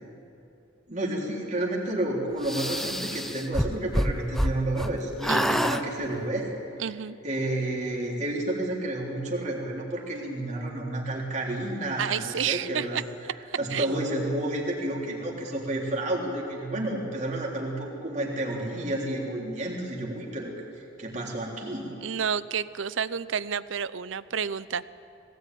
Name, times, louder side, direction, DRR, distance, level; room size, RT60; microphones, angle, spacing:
voice 1, 0.9-6.5 7.2-13.0 13.6-20.5 21.0-22.0, right 1 dB, 40° right, -2 dB, 3.6 m, -30 dB
sound 1, 2.4-4.9 5.2-5.8, equal, ahead, 0.7 m, -27 dB
voice 2, 5.3-5.7 6.8-7.2 12.0-13.0 13.7-14.1 22.0-24.9, right 7 dB, 80° right, 17 dB, 0.6 m, -30 dB
20.0 x 17.5 x 9.4 m, 2.8 s
head